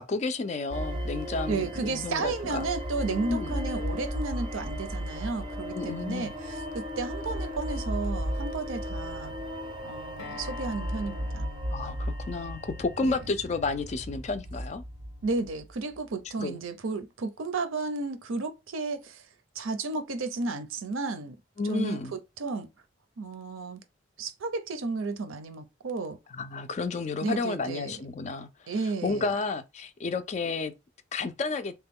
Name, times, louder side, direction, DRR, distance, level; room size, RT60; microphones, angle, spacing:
voice 1, 0.0-2.7 3.3-3.5 5.7-6.3 11.7-14.8 16.4-16.6 21.6-22.1 26.3-28.7 29.0-30.7 31.1-31.7, left 3 dB, 35° left, 0.3 m, -31 dB
sound 1, 0.7-16.0, equal, 25° right, 0.5 m, -35 dB
voice 2, 1.5-9.4 9.8-11.5 13.0-13.2 15.2-19.2 19.6-21.4 21.7-22.7 23.2-23.8 24.2-26.2 27.2-28.0 28.7-29.3, right 3 dB, 85° right, 0.6 m, -33 dB
Acoustic guitar, 10.2-15.4, left 5 dB, 80° left, 0.6 m, -47 dB
3.0 x 2.2 x 3.5 m
head